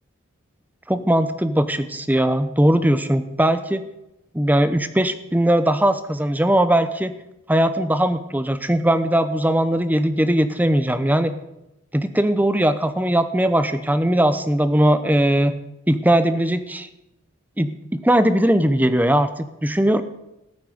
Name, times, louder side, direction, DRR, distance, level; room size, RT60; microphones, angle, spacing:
voice 1, 0.9-3.8 4.3-7.1 7.5-11.4 11.9-15.6 15.9-16.9 17.6-20.0, right 1 dB, 10° right, 11 dB, 0.8 m, -19 dB
14.0 x 8.6 x 9.4 m, 0.91 s
head